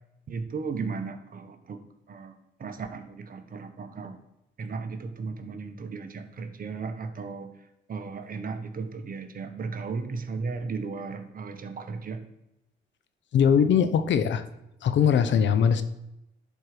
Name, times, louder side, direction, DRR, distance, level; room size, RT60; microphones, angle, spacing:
voice 1, 0.3-1.8 2.1-4.2 4.6-7.5 7.9-12.2, right 4 dB, 45° right, 7 dB, 1.1 m, -35 dB
voice 2, 13.3-14.4 14.8-15.8, left 7 dB, 65° left, 11 dB, 0.8 m, -21 dB
11.0 x 4.7 x 5.0 m, 0.87 s
cardioid pair, 90°, 20 cm